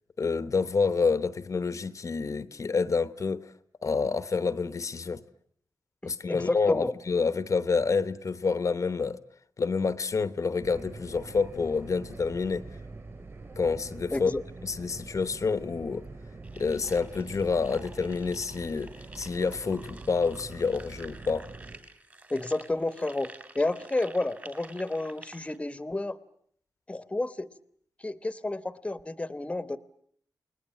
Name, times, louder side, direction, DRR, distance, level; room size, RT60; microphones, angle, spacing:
voice 1, 0.2-3.5 3.8-5.2 6.0-9.2 9.6-12.6 13.6-14.3 14.6-16.1 16.5-21.5, left 4 dB, 50° left, 1.0 m, -28 dB
voice 2, 6.0-6.9 14.1-14.4 22.3-26.2 26.9-27.5 28.0-29.8, left 2 dB, 15° left, 1.2 m, -31 dB
sound 1, 10.6-21.8, right 3 dB, 40° right, 4.5 m, -45 dB
sound 2, 16.4-25.6, right 2 dB, 25° right, 2.7 m, -50 dB
29.5 x 20.0 x 8.8 m
wide cardioid pair, 115°, 7 cm